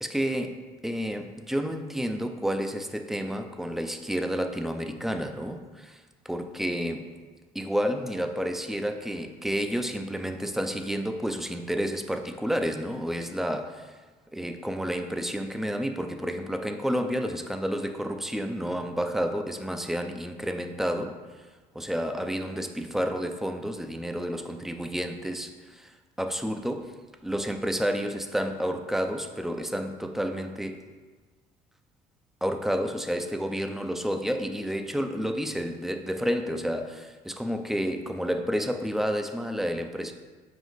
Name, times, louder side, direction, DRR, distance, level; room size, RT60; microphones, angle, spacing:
voice 1, 0.0-5.9 6.3-7.1 7.5-13.9 14.3-21.2 21.7-25.9 26.2-26.9 27.2-30.8 32.4-40.1, equal, ahead, 5 dB, 0.4 m, -30 dB
5.1 x 4.9 x 3.9 m, 1.4 s
cardioid pair, 110°, 17 cm